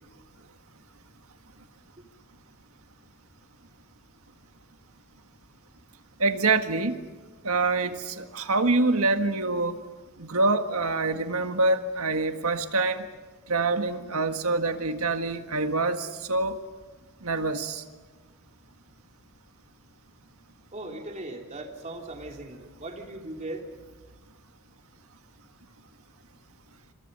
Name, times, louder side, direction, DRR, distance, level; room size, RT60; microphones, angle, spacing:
voice 1, 6.2-7.0 7.4-9.8 10.2-13.1 13.5-16.6 17.2-17.8, right 3 dB, 75° right, 7 dB, 1.7 m, -25 dB
voice 2, 20.7-23.6, right 2 dB, 35° right, 2 dB, 3.3 m, -38 dB
28.0 x 26.0 x 5.5 m, 1.3 s
head